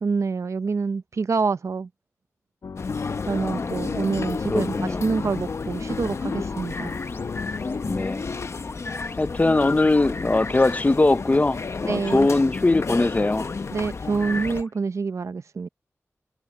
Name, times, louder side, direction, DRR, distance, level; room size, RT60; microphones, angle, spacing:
voice 1, 0.0-1.9 3.2-7.0 11.9-12.3 13.7-15.7, right 4 dB, 70° right, 0.6 m, -26 dB
sound 1, 2.6-8.1, left 5 dB, 80° left, 1.2 m, -33 dB
sound 2, 2.8-14.6, left 4 dB, 60° left, 0.7 m, -33 dB
voice 2, 4.5-5.0 7.8-8.2 9.2-13.5, left 2 dB, 30° left, 0.6 m, -21 dB
sound 3, 4.8-11.3 11.6-14.8, left 3 dB, 45° left, 1.3 m, -39 dB
wide cardioid pair, 85°, 5 cm